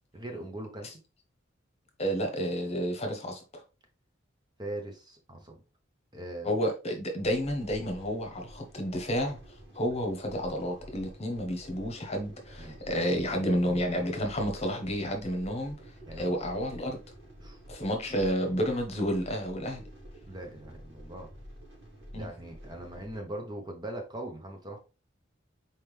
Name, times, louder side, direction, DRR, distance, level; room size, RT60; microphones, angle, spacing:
voice 1, 0.1-0.9 4.6-5.6 6.1-6.5 12.6-13.1 16.1-16.3 17.4-17.6 20.3-21.3 22.1-24.8, right 1 dB, 20° right, 0.7 m, -40 dB
voice 2, 2.0-3.6 6.4-9.4 9.7-15.8 16.2-17.0 17.7-19.8 22.1-22.3, equal, 35° left, 1.0 m, -30 dB
sound 1, 7.2-23.2, equal, 70° right, 2.5 m, -49 dB
4.4 x 3.6 x 3.1 m
head